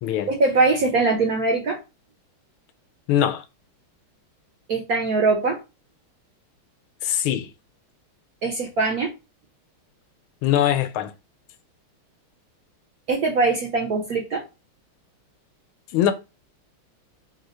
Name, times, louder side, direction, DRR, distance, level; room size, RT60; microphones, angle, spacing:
voice 1, 0.3-1.8 4.7-5.6 8.4-9.1 13.1-14.4, right 3 dB, 65° right, 0.9 m, -22 dB
voice 2, 3.1-3.4 7.0-7.5 10.4-11.1 15.9-16.1, left 11 dB, 80° left, 1.4 m, -21 dB
3.3 x 2.8 x 4.0 m
omnidirectional pair, 2.3 m